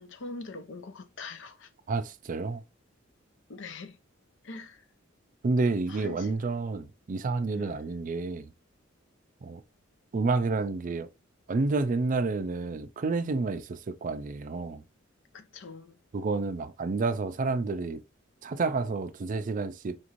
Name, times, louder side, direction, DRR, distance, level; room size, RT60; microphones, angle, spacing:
voice 1, 0.0-1.7 3.5-4.0 4.4-4.8 5.9-6.3 7.6-7.8 15.3-16.0, left 3 dB, 65° left, 0.6 m, -43 dB
voice 2, 1.9-2.6 5.4-8.5 9.4-9.6 10.1-11.1 11.5-14.8 16.1-18.0 18.4-20.0, right 3 dB, 40° right, 0.4 m, -29 dB
4.3 x 2.5 x 3.0 m
head